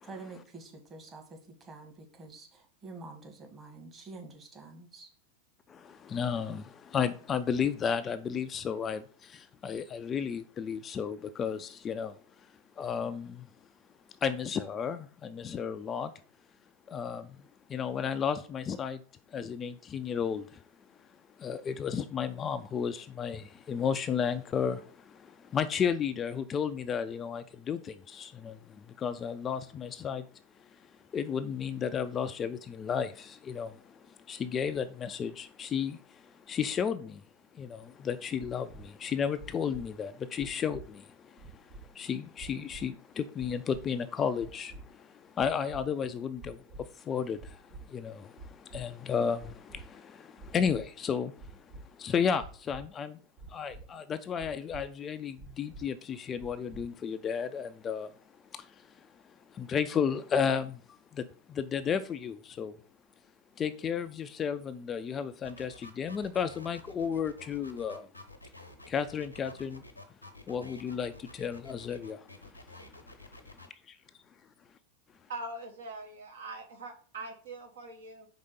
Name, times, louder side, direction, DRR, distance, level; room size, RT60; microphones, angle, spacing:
voice 1, 0.0-5.1, right 3 dB, 20° right, 1.4 m, -48 dB
voice 2, 5.7-12.2 12.8-13.5 14.2-16.1 16.9-19.0 19.3-20.6 21.4-30.3 30.6-37.2 37.5-53.2 53.5-58.1 58.5-59.1 59.5-62.8 63.6-68.1 68.9-69.8 70.5-72.8 73.1-73.2 73.9-74.0, left 7 dB, 25° left, 0.3 m, -33 dB
sound 1, 38.4-38.8 39.4-39.8 40.4-40.8 41.4-41.8 42.4-42.8 43.4-43.8 44.4-44.8 45.4-45.8 46.4-46.8 47.4-47.8 48.4-48.8 49.4-49.8 50.4-50.8 51.4-51.8 52.4-52.8 53.4-53.8 54.4-54.8 55.4-55.8 56.4-56.8, right 3 dB, 45° right, 1.5 m, -46 dB
sound 2, 65.4-73.7, left 2 dB, 85° left, 0.8 m, -50 dB
voice 3, 75.3-78.3, right 2 dB, 65° right, 1.1 m, -42 dB
4.9 x 3.6 x 5.3 m
figure-of-eight pair, 90°, 0 cm